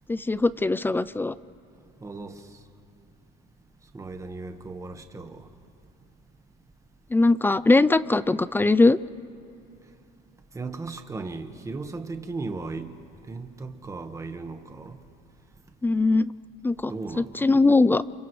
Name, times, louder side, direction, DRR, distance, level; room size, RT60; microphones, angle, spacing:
voice 1, 0.1-1.3 7.1-9.0 15.8-16.3 16.6-16.9 17.2-18.0, left 3 dB, 10° left, 0.4 m, -20 dB
voice 2, 2.0-2.5 3.9-5.5 10.5-12.9 13.3-15.0 16.9-17.6, right 3 dB, 15° right, 1.5 m, -36 dB
29.5 x 28.0 x 3.2 m
cardioid pair, 110°, 18 cm